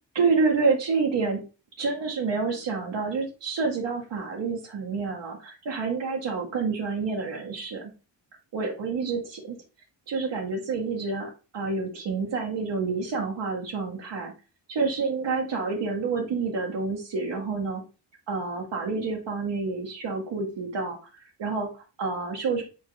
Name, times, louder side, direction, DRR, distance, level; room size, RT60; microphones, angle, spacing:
voice 1, 0.1-1.4 1.8-7.9 8.5-9.6 10.1-14.3 14.7-17.8 18.3-21.0 21.4-22.6, right 4 dB, 70° right, 0 dB, 1.2 m, -28 dB
4.4 x 3.6 x 3.2 m, 0.32 s
cardioid pair, 80°, 45 cm